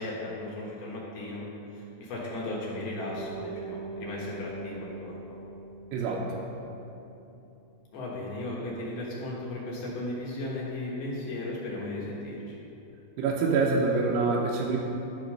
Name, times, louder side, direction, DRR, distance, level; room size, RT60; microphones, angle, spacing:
voice 1, 0.0-1.4 1.7-5.4 7.9-12.6, left 1 dB, 65° left, -5 dB, 2.9 m, -36 dB
Bass guitar, 3.1-7.4, right 4 dB, 40° right, 1.4 m, -42 dB
voice 2, 5.9-6.4 13.2-14.8, right 4 dB, 85° right, -3 dB, 3.3 m, -26 dB
12.5 x 5.4 x 5.3 m, 3.0 s
omnidirectional pair, 5.4 m